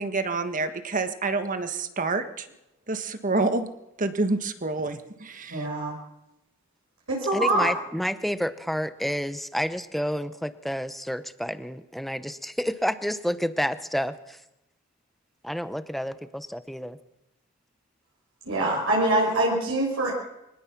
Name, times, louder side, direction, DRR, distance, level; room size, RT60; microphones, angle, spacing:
voice 1, 0.0-2.5 2.9-3.7 4.0-5.7, right 3 dB, 40° right, 9 dB, 1.5 m, -28 dB
voice 2, 5.5-6.0 7.1-7.7 18.5-20.1, right 1 dB, 70° right, -2 dB, 5.9 m, -24 dB
voice 3, 7.3-14.4 15.4-17.0, equal, ahead, 11 dB, 0.9 m, -29 dB
24.0 x 18.5 x 6.0 m, 0.91 s
head